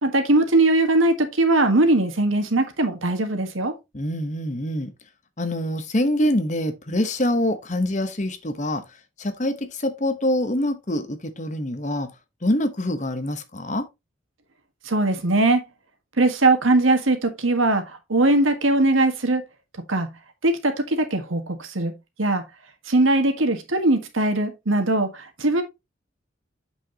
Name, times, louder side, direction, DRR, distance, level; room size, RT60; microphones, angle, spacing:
voice 1, 0.0-3.7 14.9-15.6 16.2-17.8 18.1-19.4 19.9-20.1 20.4-21.9 22.2-22.4 22.9-25.6, right 2 dB, 85° right, 1.7 m, -20 dB
voice 2, 3.9-4.9 5.4-12.1 12.4-13.9, left 1 dB, 40° left, 1.2 m, -25 dB
7.7 x 6.2 x 3.0 m
head